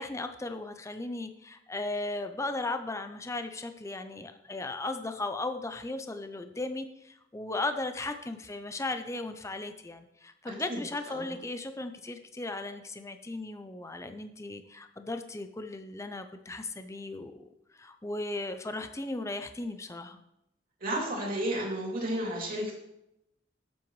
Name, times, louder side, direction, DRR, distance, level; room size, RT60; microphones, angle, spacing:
voice 1, 0.0-17.5 17.8-20.2, left 2 dB, 15° left, 8 dB, 0.6 m, -36 dB
voice 2, 10.4-10.8 11.1-11.4 20.8-22.7, right 1 dB, 50° right, -2 dB, 2.8 m, -32 dB
12.5 x 7.6 x 3.2 m, 0.84 s
head